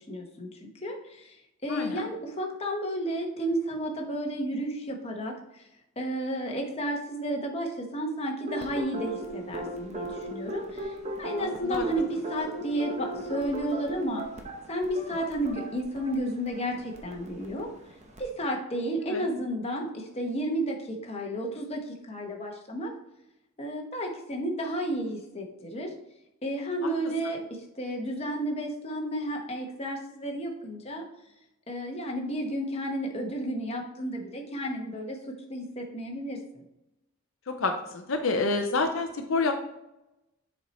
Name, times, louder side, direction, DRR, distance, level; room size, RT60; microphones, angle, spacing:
voice 1, 0.0-1.4 1.6-5.6 6.0-14.2 14.7-17.7 18.2-22.9 23.6-25.9 26.4-31.0 31.7-35.2 35.5-36.6, right 1 dB, 30° left, 1 dB, 1.0 m, -32 dB
sound 1, 8.5-18.3, right 1 dB, 30° right, 0.8 m, -38 dB
voice 2, 11.4-11.8 19.1-19.3 26.8-26.9 37.5-39.5, left 3 dB, 65° left, 5 dB, 0.6 m, -28 dB
7.3 x 4.4 x 4.2 m, 0.89 s
head